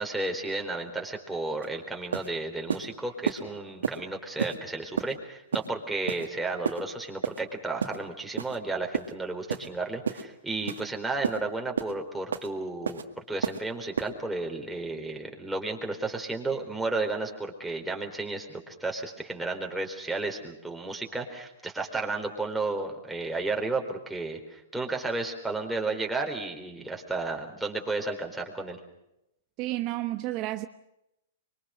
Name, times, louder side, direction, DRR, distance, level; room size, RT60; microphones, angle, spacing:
voice 1, 0.0-13.0 13.3-28.8, right 3 dB, 5° right, 4.1 m, -33 dB
sound 1, 1.6-1.7 2.1-2.3 2.7-2.9 3.3-3.4 3.8-4.0 4.4-4.6 5.0-5.1 5.5-5.7 6.1-6.3 6.7-6.8 7.2-7.4 7.8-8.0 8.4-8.6 8.9-9.1 9.5-9.7 10.1-10.2 10.7-10.8 11.2-11.4 11.8-11.9 12.3-12.5 12.9-13.0 13.4-13.6 14.0-14.1, right 7 dB, 85° right, 2.0 m, -30 dB
voice 2, 29.6-30.7, right 16 dB, 40° right, 0.9 m, -31 dB
25.0 x 23.5 x 6.5 m
hypercardioid pair, 130°, 0 cm